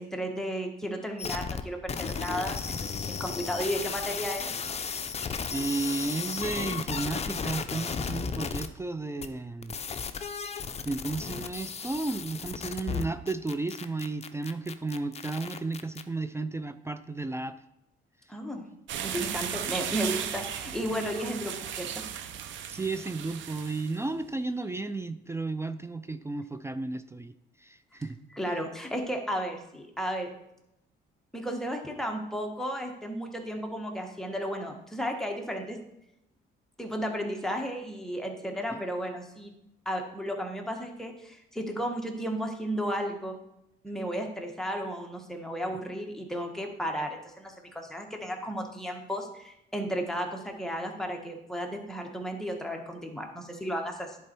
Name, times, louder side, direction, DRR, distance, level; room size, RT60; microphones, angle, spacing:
voice 1, 0.0-4.5 18.3-18.7 19.0-22.0 28.3-30.3 31.3-35.8 36.8-39.5 39.8-43.4 43.8-54.2, equal, ahead, 2 dB, 1.4 m, -34 dB
sound 1, 1.2-1.6 1.9-8.7 9.2-9.3 9.6-16.0, left 6 dB, 30° left, 0.6 m, -34 dB
voice 2, 5.5-9.8 10.8-17.6 22.7-27.3 27.6-28.2 38.7-38.8, right 3 dB, 15° right, 11 dB, 0.4 m, -33 dB
sound 2, 18.9-24.0, right 9 dB, 75° right, 0.6 m, -36 dB
10.5 x 4.3 x 4.5 m, 0.82 s
cardioid pair, 90°, 20 cm